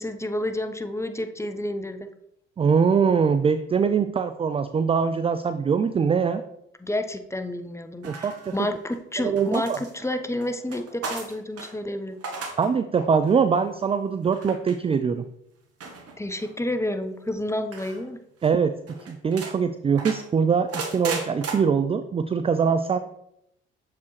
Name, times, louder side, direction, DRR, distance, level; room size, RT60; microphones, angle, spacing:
voice 1, 0.0-2.1 6.8-12.2 16.2-18.2, left 1 dB, 10° left, 8 dB, 0.7 m, -30 dB
voice 2, 2.6-6.4 8.0-8.7 9.2-9.8 12.6-15.2 18.4-18.7 19.1-23.0, right 6 dB, 20° right, 11 dB, 0.3 m, -23 dB
sound 1, 8.0-8.9 9.4-11.7 12.1-12.7 13.0-13.4 14.3-14.8 15.8-16.5 17.7-18.0 18.4-18.5 18.9-19.5 20.0-21.5, right 4 dB, 50° right, 1.3 m, -35 dB
6.8 x 4.7 x 3.2 m, 0.77 s
hypercardioid pair, 55°, 31 cm